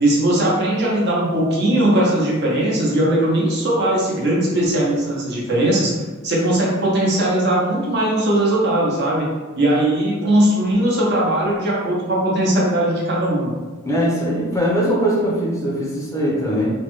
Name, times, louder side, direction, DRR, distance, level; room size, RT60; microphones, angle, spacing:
voice 1, 0.0-5.9 6.2-9.3 9.6-13.5, right 1 dB, 55° right, -4 dB, 0.8 m, -19 dB
voice 2, 13.8-16.7, equal, 15° left, -5 dB, 0.5 m, -21 dB
3.1 x 2.1 x 3.0 m, 1.3 s
head